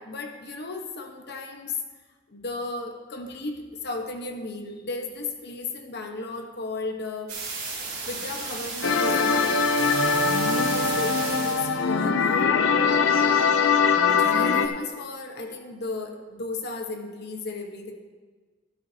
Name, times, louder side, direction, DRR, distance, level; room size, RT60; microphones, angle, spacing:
voice 1, 0.0-1.8 2.3-7.3 8.1-9.6 10.5-12.6 13.2-13.5 14.1-17.9, left 3 dB, 55° left, 3 dB, 1.1 m, -35 dB
sound 1, 7.3-11.7, right 4 dB, 55° right, 3.3 m, -33 dB
sound 2, 8.8-14.7, left 5 dB, 75° left, 0.6 m, -22 dB
12.5 x 12.0 x 2.8 m, 1.4 s
head